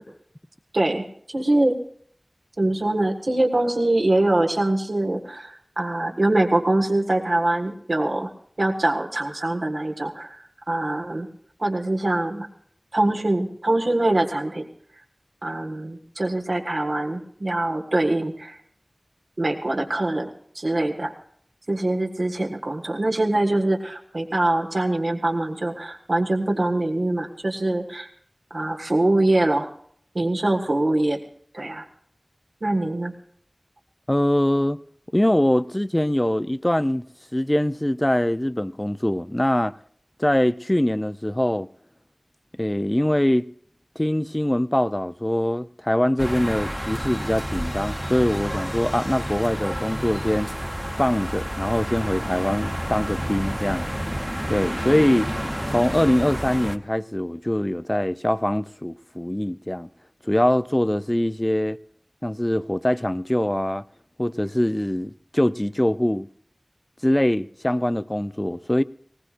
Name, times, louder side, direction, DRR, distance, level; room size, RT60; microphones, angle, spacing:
voice 1, 0.7-1.8 2.6-8.3 8.6-11.3 11.6-12.5 12.9-14.7 15.4-18.6 19.4-21.1 21.7-28.1 28.5-29.7 30.1-31.2 31.5-31.9 32.6-33.1, right 2 dB, 90° right, 1.6 m, -23 dB
voice 2, 34.1-34.8 35.1-37.1 37.3-39.7 40.2-41.7 42.6-43.5 44.0-50.5 51.0-53.9 54.5-55.3 55.7-59.9 60.2-61.8 62.2-63.8 64.2-66.3 67.0-68.8, left 1 dB, 20° left, 0.5 m, -23 dB
sound 1, 46.2-56.8, equal, 5° right, 0.9 m, -30 dB
19.5 x 19.5 x 2.5 m
wide cardioid pair, 40°, 0 cm